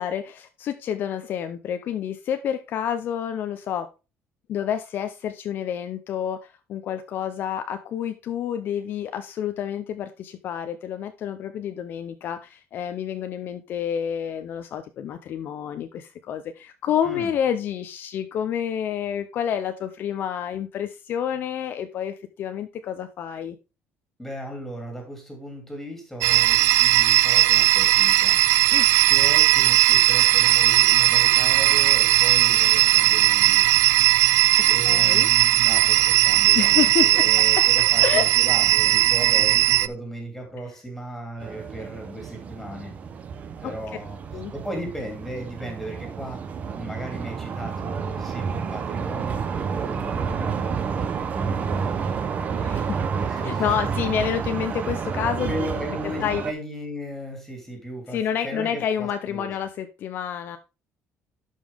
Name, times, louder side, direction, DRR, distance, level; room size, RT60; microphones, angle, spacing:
voice 1, 0.0-3.9 4.5-23.6 28.7-28.9 34.8-35.3 36.5-37.2 38.0-38.3 43.6-43.7 44.3-44.5 52.5-53.0 53.4-55.5 56.2-56.4 58.1-60.6, left 9 dB, 45° left, 8 dB, 0.6 m, -29 dB
voice 2, 17.0-17.3 24.2-28.4 29.0-33.6 34.6-42.9 43.5-46.5 46.7-52.2 53.1-53.7 55.4-59.5, equal, 5° left, 2 dB, 2.9 m, -36 dB
sound 1, 26.2-39.9, right 16 dB, 75° right, 0.4 m, -18 dB
sound 2, 41.4-56.5, right 6 dB, 30° right, 0.8 m, -30 dB
11.5 x 5.4 x 3.5 m, 0.29 s
cardioid pair, 180°, 5 cm